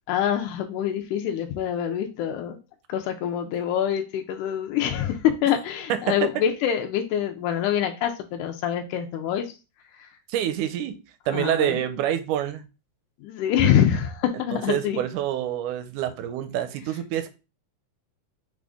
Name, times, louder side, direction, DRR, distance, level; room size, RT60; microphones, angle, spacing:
voice 1, 0.1-2.6 2.9-9.6 9.9-10.1 11.3-11.8 13.2-15.0, left 9 dB, 80° left, 2.0 m, -25 dB
voice 2, 5.9-6.4 10.3-11.0 11.3-12.7 14.5-17.3, right 11 dB, 80° right, 2.0 m, -27 dB
6.1 x 2.5 x 3.5 m
omnidirectional pair, 3.6 m